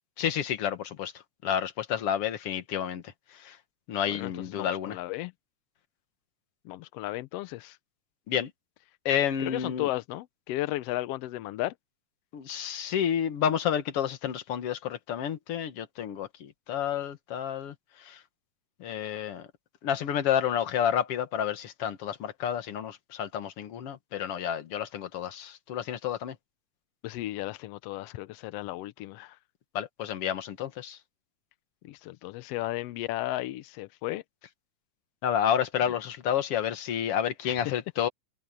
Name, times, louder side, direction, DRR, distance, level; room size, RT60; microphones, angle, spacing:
voice 1, 0.2-1.1 1.4-3.0 3.3-3.6 3.9-5.0 8.3-8.5 9.1-9.9 12.3-18.2 18.8-19.5 19.8-26.4 29.7-31.0 35.2-38.1, left 9 dB, 55° left, 2.1 m, -30 dB
voice 2, 4.1-5.3 6.6-7.8 9.4-11.7 27.0-29.4 31.8-34.2 37.5-37.6, left 16 dB, 85° left, 1.4 m, -34 dB
omnidirectional pair, 3.5 m